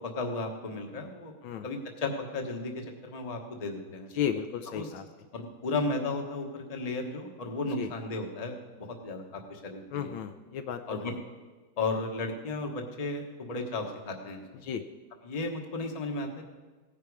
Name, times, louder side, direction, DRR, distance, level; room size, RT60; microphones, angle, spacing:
voice 1, 0.0-1.3 1.6-4.1 4.7-4.9 5.3-10.1 10.9-11.1 11.8-14.4 15.2-16.5, left 2 dB, 25° left, 3 dB, 0.9 m, -34 dB
voice 2, 4.1-5.1 7.8-7.9 9.9-11.0 14.6-14.8, left 9 dB, 75° left, 6 dB, 1.3 m, -34 dB
17.0 x 10.0 x 4.8 m, 1.3 s
omnidirectional pair, 2.3 m